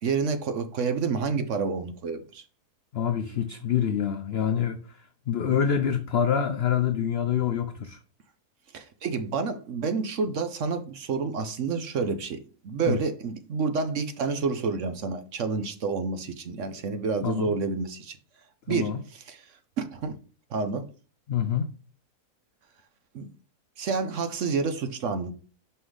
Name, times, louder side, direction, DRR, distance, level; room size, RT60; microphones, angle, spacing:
voice 1, 0.0-2.4 5.4-5.6 8.7-18.2 18.7-19.4 19.8-20.2 20.5-20.9 23.1-23.3 23.8-25.3, right 5 dB, 60° right, 0.9 m, -29 dB
voice 2, 2.9-4.8 5.3-8.0 12.9-13.0 17.2-17.5 18.7-19.0 21.3-21.7, left 8 dB, 75° left, 0.5 m, -26 dB
5.6 x 5.6 x 3.2 m
omnidirectional pair, 1.7 m